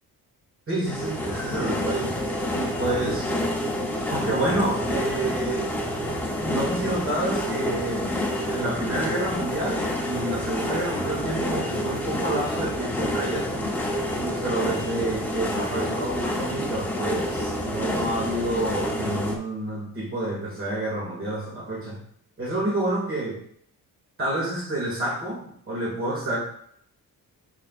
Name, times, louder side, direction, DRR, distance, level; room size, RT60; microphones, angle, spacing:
voice 1, 0.7-2.2 2.5-3.3 4.1-5.7 6.2-13.7 14.2-22.0 22.4-23.4 24.2-26.4, right 1 dB, 35° right, -4 dB, 2.2 m, -29 dB
sound 1, 0.9-19.4, left 1 dB, 5° left, 0.9 m, -28 dB
8.7 x 5.1 x 2.5 m, 0.66 s
cardioid pair, 145°, 36 cm